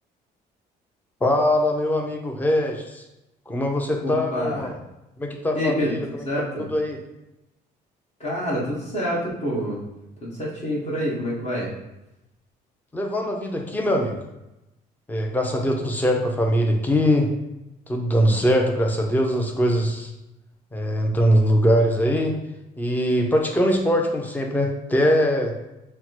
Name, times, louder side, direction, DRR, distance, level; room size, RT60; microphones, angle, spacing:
voice 1, 1.2-3.0 3.5-4.7 5.2-6.0 6.7-7.0 12.9-14.2 15.1-17.3 17.9-20.1 20.7-22.3 22.8-25.5, equal, 10° left, 2 dB, 0.6 m, -22 dB
voice 2, 4.0-4.7 5.5-6.7 8.2-9.8 10.2-11.7, equal, 40° left, -5 dB, 1.3 m, -27 dB
5.7 x 2.2 x 2.9 m, 0.93 s
cardioid pair, 110°, 17 cm